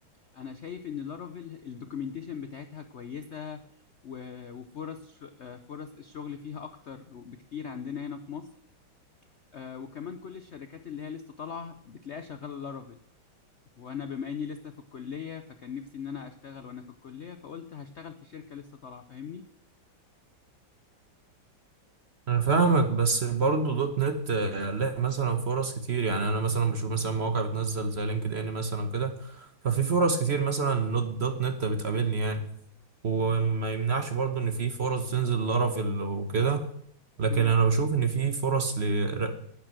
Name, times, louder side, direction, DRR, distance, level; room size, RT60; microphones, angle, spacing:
voice 1, 0.3-3.7 4.0-8.5 9.5-13.0 13.8-19.4 37.3-37.5, left 7 dB, 90° left, 9 dB, 0.6 m, -40 dB
voice 2, 22.3-32.4 33.0-36.7 37.2-39.5, right 4 dB, 40° right, 8 dB, 1.0 m, -27 dB
10.5 x 8.9 x 7.6 m, 0.68 s
omnidirectional pair, 2.2 m